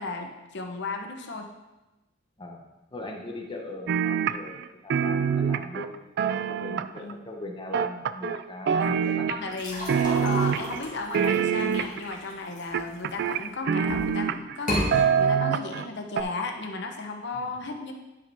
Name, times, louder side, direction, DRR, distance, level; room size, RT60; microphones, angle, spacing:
voice 1, 0.0-1.5 7.0-7.2 8.7-9.0 9.3-17.9, left 3 dB, 65° left, 4 dB, 0.9 m, -35 dB
voice 2, 2.9-6.1 6.5-9.3 17.3-17.5, left 2 dB, 25° left, 1 dB, 1.0 m, -40 dB
sound 1, 3.9-4.6 4.9-7.1 7.7-8.4 8.7-9.6 9.9-10.8 11.1-12.1 12.7-14.6 14.9-15.8 16.2-16.3, right 7 dB, 60° right, 0.3 m, -25 dB
sound 2, 9.5-13.3 13.8-14.2 14.6-14.9, equal, 45° left, 2.1 m, -33 dB
10.5 x 5.0 x 3.5 m, 1.1 s
head